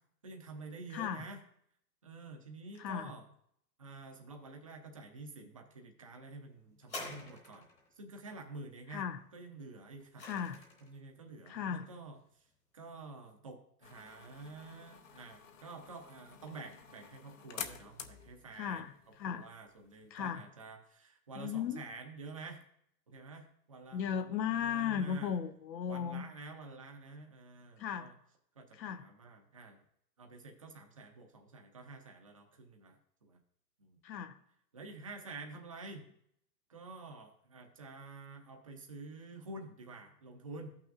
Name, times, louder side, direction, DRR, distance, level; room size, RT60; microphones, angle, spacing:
voice 1, 0.2-1.4 2.0-3.2 3.8-7.7 8.0-9.1 9.3-10.3 10.8-12.4 12.7-18.8 19.3-22.6 23.1-25.4 25.8-28.1 28.6-29.8 30.2-33.4 33.8-34.0 34.7-36.1 36.7-40.7, right 3 dB, 20° right, 3 dB, 0.5 m, -49 dB
voice 2, 0.9-1.2 2.8-3.1 8.9-9.2 10.2-10.6 11.5-11.9 18.5-19.5 20.1-20.4 21.4-21.8 23.9-26.2 27.8-28.1 28.7-29.0 34.0-34.4, left 8 dB, 90° left, 8 dB, 0.9 m, -36 dB
sound 1, 6.8-7.9 9.6-11.0 11.8-11.9, left 2 dB, 15° left, 1.1 m, -47 dB
sound 2, 13.8-20.1, left 8 dB, 50° left, 0.8 m, -50 dB
15.0 x 5.9 x 2.4 m, 0.70 s
hypercardioid pair, 165°, 50 cm